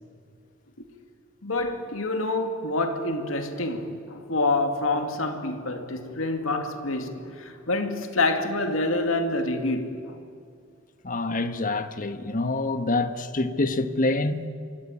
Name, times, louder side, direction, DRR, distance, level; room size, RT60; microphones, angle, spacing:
voice 1, 1.4-10.2, left 2 dB, 80° left, 2.3 m, -27 dB
voice 2, 11.0-14.5, left 2 dB, 40° left, 1.4 m, -26 dB
27.0 x 23.5 x 8.8 m
head